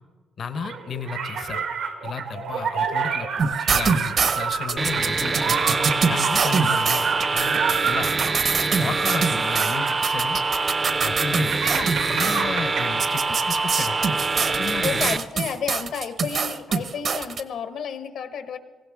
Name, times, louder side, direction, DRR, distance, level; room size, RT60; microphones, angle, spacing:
voice 1, 0.4-1.6 2.0-5.6 6.1-8.1 8.8-10.4 11.0-14.0 14.6-15.2, left 5 dB, 55° left, 10 dB, 0.9 m, -33 dB
sound 1, 0.5-13.8, right 6 dB, 80° right, 1.6 m, -29 dB
sound 2, 3.4-12.4 13.0-17.4, right 5 dB, 55° right, 1.0 m, -25 dB
sound 3, 4.8-15.2, right 3 dB, 30° right, 0.6 m, -25 dB
voice 2, 14.8-18.6, left 7 dB, 70° left, 9 dB, 1.2 m, -31 dB
18.5 x 16.0 x 3.6 m, 1.4 s
cardioid pair, 90°, 0 cm